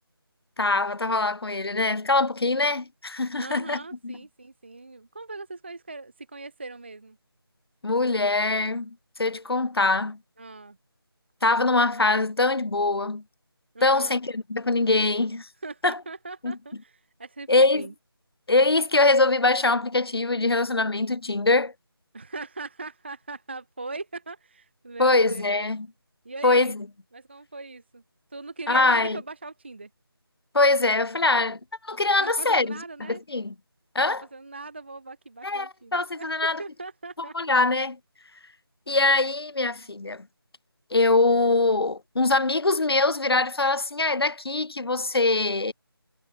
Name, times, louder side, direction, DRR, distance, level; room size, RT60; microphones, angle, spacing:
voice 1, 0.6-4.1 7.8-10.2 11.4-13.2 13.8-15.5 15.8-16.0 16.4-16.6 17.5-17.9 18.5-21.7 25.0-25.9 26.4-26.8 28.7-29.2 30.5-32.8 33.1-33.5 33.9-34.2 35.4-36.6 37.3-38.0 38.9-40.3 40.9-45.7, left 3 dB, 75° left, 0.6 m, -23 dB
voice 2, 3.4-7.2 10.4-10.8 13.7-14.2 15.6-17.5 17.7-17.9 22.1-25.7 26.2-26.7 27.1-28.0 28.3-29.9 32.2-33.2 34.0-37.4, right 3 dB, 25° right, 0.5 m, -40 dB
figure-of-eight pair, 165°, 13 cm